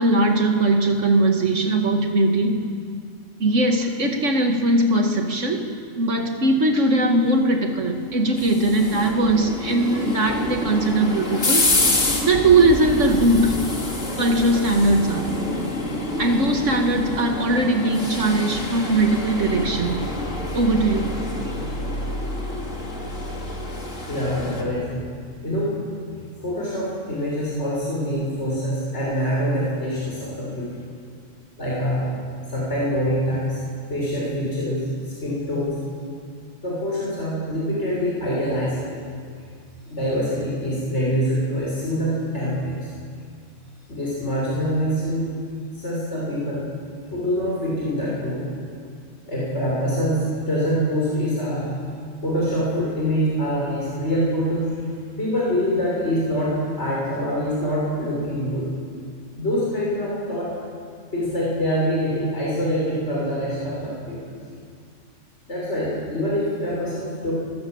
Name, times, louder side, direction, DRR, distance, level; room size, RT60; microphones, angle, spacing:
voice 1, 0.0-2.6 3.4-5.7 6.0-11.7 12.2-13.6 14.2-15.4 16.2-20.1 20.5-21.1, right 2 dB, 75° right, 4 dB, 2.5 m, -20 dB
sound 1, 8.0-24.6, left 2 dB, 85° left, 3.3 m, -27 dB
voice 2, 24.0-25.0 25.4-25.8 26.4-30.7 31.6-32.1 32.5-33.6 33.9-34.9 35.2-35.8 36.6-38.9 39.9-42.9 43.9-45.3 45.7-46.6 47.1-48.5 49.2-51.7 52.2-54.7 55.2-58.7 59.3-60.6 61.1-64.3 65.5-67.3, equal, 60° left, -6 dB, 6.5 m, -25 dB
25.5 x 21.0 x 8.1 m, 2.2 s
omnidirectional pair, 1.3 m